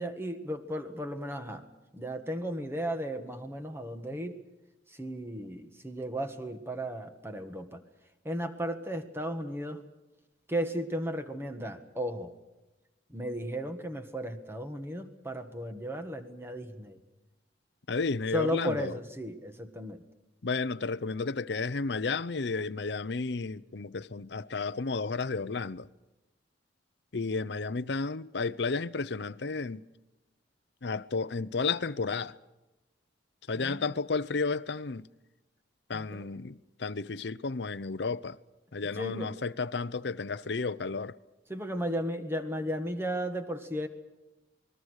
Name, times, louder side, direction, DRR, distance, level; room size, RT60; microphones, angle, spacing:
voice 1, 0.0-1.7 1.9-4.4 4.9-7.8 8.2-9.8 10.5-12.3 13.1-17.0 18.3-20.0 33.5-33.9 35.9-36.3 38.9-39.3 41.5-43.9, equal, 15° right, 1.7 m, -35 dB
voice 2, 17.9-18.9 20.4-25.9 27.1-29.9 30.8-32.4 33.5-35.1 35.9-38.4 38.7-41.2, left 4 dB, 65° left, 0.7 m, -32 dB
28.0 x 20.5 x 6.5 m
head